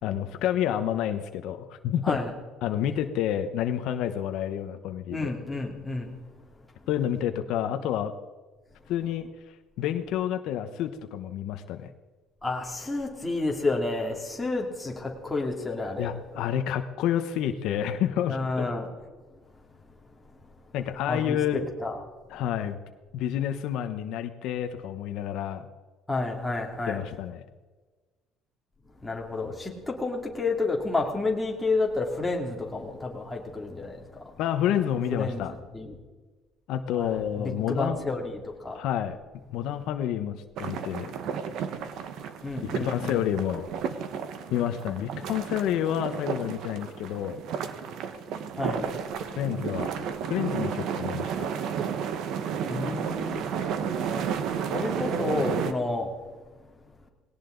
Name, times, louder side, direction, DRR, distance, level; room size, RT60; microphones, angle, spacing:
voice 1, 0.0-2.2 2.6-5.3 6.9-8.1 8.9-9.3 9.8-11.9 16.0-18.4 20.7-21.7 22.3-22.8 23.1-25.7 26.9-27.4 34.4-35.5 36.7-38.0 38.7-39.2 39.5-41.1 42.6-43.7 44.5-47.4 49.4-49.9 50.3-51.5, left 10 dB, 70° left, 8 dB, 1.0 m, -29 dB
voice 2, 5.1-6.1 12.4-16.1 18.3-18.9 20.3-20.4 21.0-22.0 26.1-27.0 29.0-34.4 35.1-36.0 36.9-38.8 42.4-43.2 48.6-48.9 52.7-53.5 54.7-56.1 56.6-56.7, left 3 dB, 10° left, -1 dB, 2.7 m, -30 dB
sound 1, 40.6-55.7, right 7 dB, 65° right, 1.3 m, -32 dB
19.0 x 18.0 x 4.0 m, 1.3 s
cardioid pair, 150°, 0 cm